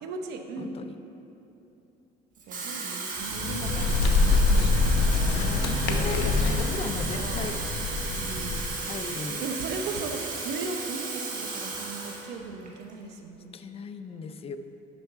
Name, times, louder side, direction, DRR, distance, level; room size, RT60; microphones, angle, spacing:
voice 1, 0.0-0.7 2.5-5.0 5.9-6.6 7.1-7.5 8.1-8.7 9.4-13.5, right 4 dB, 85° right, 5 dB, 0.8 m, -37 dB
voice 2, 0.6-1.0 5.1-7.6 8.8-9.5 10.1-10.2 13.5-14.6, left 4 dB, 35° left, 9 dB, 0.4 m, -37 dB
Water tap faucet / Fill (with liquid), 2.4-12.3 12.7-12.9, right 4 dB, 50° right, 1.4 m, -35 dB
Bird, 3.2-8.9, left 3 dB, 85° left, 0.8 m, -25 dB
sound 1, 3.4-12.4, right 2 dB, 10° left, 1.8 m, -47 dB
7.0 x 5.7 x 5.5 m, 3.0 s
cardioid pair, 110°, 17 cm